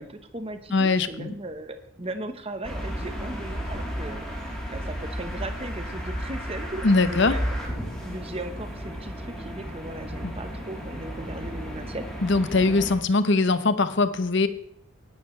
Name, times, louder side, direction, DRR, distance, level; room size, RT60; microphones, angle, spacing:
voice 1, 0.0-7.7 8.0-12.1, right 2 dB, 25° right, 8 dB, 1.1 m, -37 dB
voice 2, 0.7-1.3 6.8-7.4 10.2-10.3 12.2-14.5, left 3 dB, 55° left, 12 dB, 0.8 m, -21 dB
sound 1, 2.6-13.0, equal, 5° left, 3.4 m, -33 dB
19.5 x 11.5 x 3.3 m, 0.68 s
head